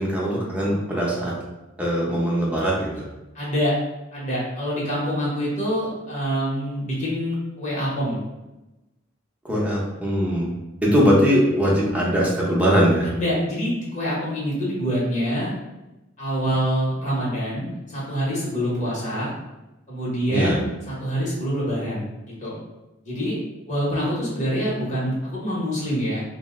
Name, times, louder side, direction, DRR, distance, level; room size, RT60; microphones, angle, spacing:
voice 1, 0.0-1.3 1.8-2.9 9.4-10.5 10.8-13.1 20.3-20.6, equal, 5° right, -5 dB, 0.7 m, -21 dB
voice 2, 3.3-3.8 4.1-8.2 13.0-15.5 16.2-19.3 19.9-22.6 23.0-23.4 23.7-26.2, equal, 40° left, -6 dB, 1.0 m, -26 dB
2.6 x 2.1 x 3.6 m, 1.0 s
head